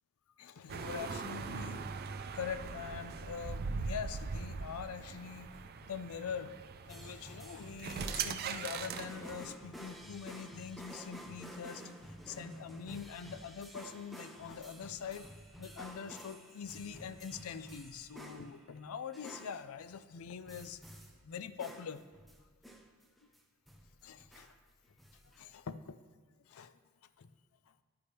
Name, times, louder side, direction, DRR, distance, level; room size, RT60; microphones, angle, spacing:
voice 1, 0.4-1.8 2.3-5.5 5.8-6.5 6.9-11.8 12.3-15.3 15.6-20.8 21.2-22.0 24.0-24.5 25.3-26.0 26.5-26.7 27.2-27.3, left 7 dB, 80° left, 13 dB, 0.4 m, -44 dB
sound 1, 0.7-9.5, right 5 dB, 45° right, 0.4 m, -41 dB
sound 2, 6.9-18.8 19.1-19.7 20.5-21.2 21.6-23.4 23.7-24.6 24.8-25.4, equal, ahead, 0.7 m, -51 dB
10.0 x 9.5 x 3.4 m, 1.4 s
head